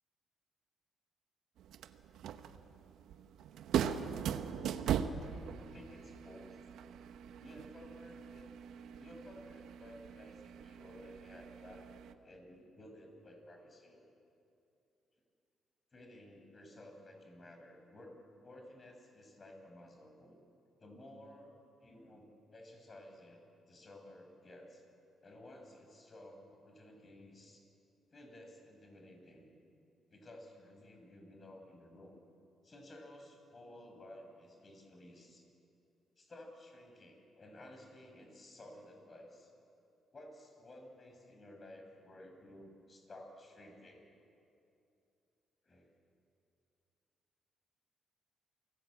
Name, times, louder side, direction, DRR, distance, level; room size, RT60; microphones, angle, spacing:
sound 1, 1.6-12.1, right 8 dB, 80° right, 1.0 m, -40 dB
voice 1, 5.7-6.7 7.4-8.5 9.0-14.0 15.9-20.4 20.8-21.5 21.8-24.8 25.2-27.7 28.1-29.5 30.1-32.2 32.6-35.4 36.2-39.5 40.1-44.0 45.6-45.9, left 1 dB, 35° left, 3 dB, 6.0 m, -55 dB
28.0 x 19.0 x 8.4 m, 2.7 s
cardioid pair, 90°, 0 cm